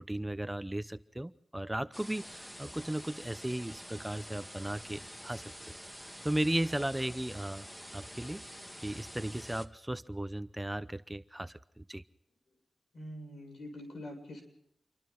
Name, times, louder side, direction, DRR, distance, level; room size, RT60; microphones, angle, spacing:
voice 1, 0.0-5.7 6.2-7.6 7.9-8.4 8.8-12.0, right 1 dB, 10° right, 12 dB, 0.8 m, -36 dB
sound 1, 1.9-9.7, equal, 5° left, 1.7 m, -48 dB
voice 2, 12.9-14.4, left 1 dB, 75° left, 4 dB, 7.4 m, -44 dB
28.0 x 24.0 x 4.0 m, 0.74 s
wide cardioid pair, 80°, 0 cm